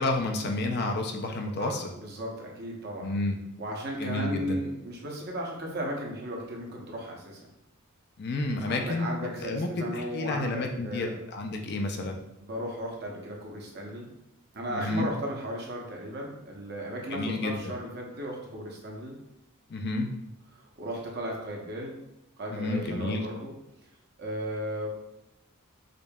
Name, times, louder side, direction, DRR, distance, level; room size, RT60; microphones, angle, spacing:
voice 1, 0.0-1.9 3.0-3.4 4.0-4.6 8.2-12.2 14.7-15.1 17.1-17.7 19.7-20.1 22.5-23.2, left 2 dB, 50° left, 3 dB, 0.4 m, -30 dB
voice 2, 2.0-3.2 3.6-7.4 8.7-11.2 12.4-14.1 14.5-19.2 20.5-21.9 22.4-23.5 24.2-24.9, equal, 50° right, -1 dB, 0.8 m, -35 dB
5.0 x 2.7 x 2.3 m, 0.85 s
head